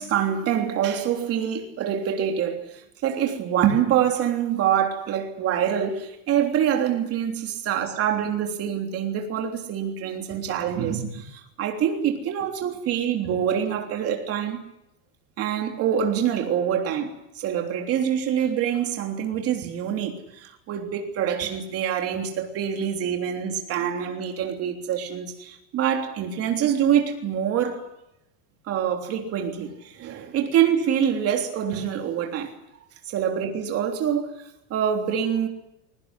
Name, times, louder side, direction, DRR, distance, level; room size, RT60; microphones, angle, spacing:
voice 1, 0.0-14.6 15.4-27.8 28.6-32.5 33.1-35.5, right 9 dB, 30° right, 3.4 m, -25 dB
22.5 x 19.0 x 9.9 m
supercardioid pair, 170°, 46 cm